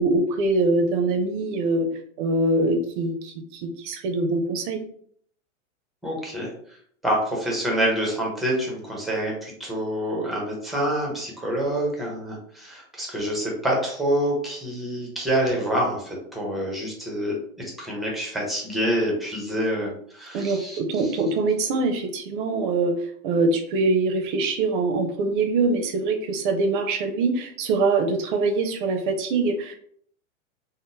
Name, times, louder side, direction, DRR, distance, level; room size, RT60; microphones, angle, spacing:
voice 1, 0.0-1.9 2.2-4.8 20.3-22.9 23.2-29.8, right 3 dB, 40° right, 5 dB, 0.5 m, -23 dB
voice 2, 6.0-6.5 7.0-20.8, right 1 dB, ahead, -2 dB, 0.6 m, -27 dB
3.6 x 2.0 x 2.6 m, 0.62 s
hypercardioid pair, 135°, 40 cm